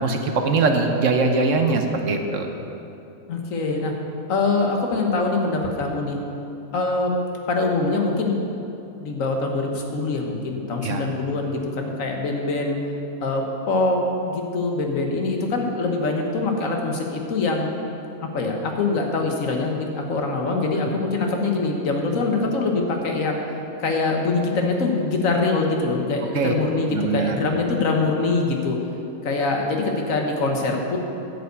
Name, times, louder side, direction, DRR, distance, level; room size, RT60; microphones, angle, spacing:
voice 1, 0.0-2.5 10.8-11.1 20.9-21.0 26.3-26.5 26.9-27.4, right 3 dB, 65° right, 4 dB, 1.2 m, -22 dB
voice 2, 3.3-3.9 4.3-6.2 6.7-7.1 7.5-8.4 9.0-12.8 13.2-17.7 18.2-23.4 23.8-28.8 29.2-31.0, left 3 dB, 70° left, 2 dB, 1.5 m, -24 dB
10.5 x 5.2 x 8.1 m, 2.8 s
omnidirectional pair, 1.5 m